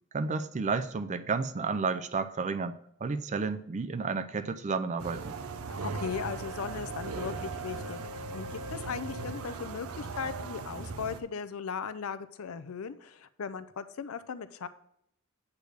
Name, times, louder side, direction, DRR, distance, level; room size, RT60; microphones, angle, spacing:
voice 1, 0.1-5.3, right 4 dB, 35° right, 11 dB, 0.4 m, -31 dB
sound 1, 5.0-11.2, right 4 dB, 90° right, 0.6 m, -38 dB
voice 2, 5.7-14.7, left 6 dB, 75° left, 13 dB, 0.5 m, -38 dB
8.2 x 3.4 x 6.3 m, 0.72 s
head